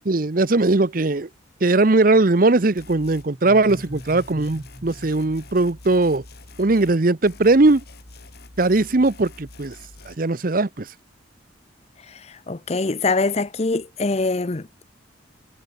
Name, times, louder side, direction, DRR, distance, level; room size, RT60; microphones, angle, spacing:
voice 1, 0.0-1.3 1.6-6.2 6.6-7.8 8.6-9.7 10.0-10.9, right 2 dB, 50° right, 0.8 m, -19 dB
sound 1, 2.8-3.3 3.7-7.0 7.2-10.2, left 2 dB, 55° left, 2.4 m, -45 dB
sound 2, 3.3-6.2, equal, 10° right, 3.0 m, -41 dB
voice 2, 12.1-14.7, left 3 dB, 35° left, 0.7 m, -24 dB
head